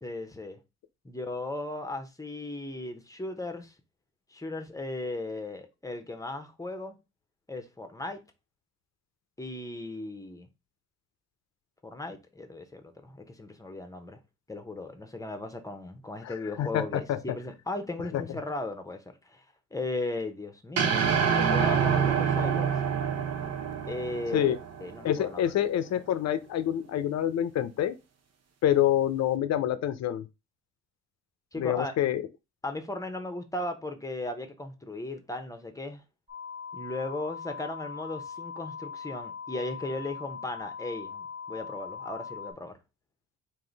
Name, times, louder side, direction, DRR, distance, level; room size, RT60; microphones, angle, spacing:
voice 1, 0.0-0.6 1.0-3.7 4.3-6.9 7.5-8.2 9.4-10.5 11.8-14.2 14.5-19.4 19.7-21.0 21.3-22.7 23.9-24.6 24.8-25.4 31.5-31.9 32.6-36.0 36.7-42.8, left 2 dB, 10° left, 0.8 m, -36 dB
voice 2, 16.2-17.2 18.1-18.4 24.3-24.6 25.0-28.0 28.6-30.3 31.6-32.2, left 11 dB, 60° left, 0.6 m, -27 dB
sound 1, 20.8-25.1, right 7 dB, 60° right, 0.7 m, -26 dB
sound 2, 36.3-42.5, left 6 dB, 20° right, 1.2 m, -41 dB
3.7 x 2.7 x 3.9 m
cardioid pair, 90°, 30 cm